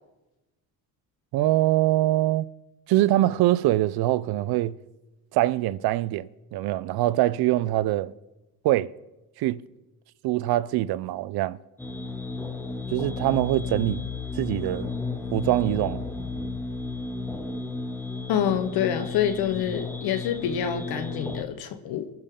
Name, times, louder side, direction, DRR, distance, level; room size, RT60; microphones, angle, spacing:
voice 1, 1.3-2.5 2.9-4.7 5.3-8.1 8.6-8.9 9.4-9.6 10.2-11.6 12.9-14.1 14.4-14.9 15.3-16.0, right 15 dB, 80° right, 0.6 m, -23 dB
sound 1, 11.8-21.4, left 3 dB, 5° left, 2.3 m, -33 dB
voice 2, 18.3-22.1, left 9 dB, 80° left, 1.2 m, -27 dB
24.0 x 10.5 x 3.8 m
supercardioid pair, 70°, 37 cm